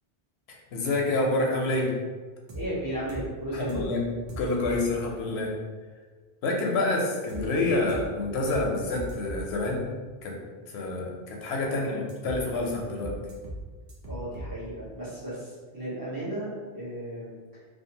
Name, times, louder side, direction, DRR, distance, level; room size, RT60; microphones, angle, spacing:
voice 1, 0.5-1.9 3.5-4.0 4.4-5.5 6.4-9.8 10.2-10.4 10.7-13.1, left 2 dB, 90° left, 0 dB, 0.8 m, -28 dB
voice 2, 2.5-3.9 11.7-12.1 14.1-17.3, right 1 dB, 20° right, -10 dB, 0.9 m, -35 dB
sound 1, 2.5-2.7 3.1-3.3 3.7-3.9 4.3-4.8 7.3-7.5 7.9-8.1 8.5-8.7 8.9-9.4 12.1-12.4 12.7-12.8 13.0-13.6 13.9-14.5, equal, 55° right, 0.7 m, -38 dB
2.6 x 2.3 x 2.7 m, 1.5 s
omnidirectional pair, 1.1 m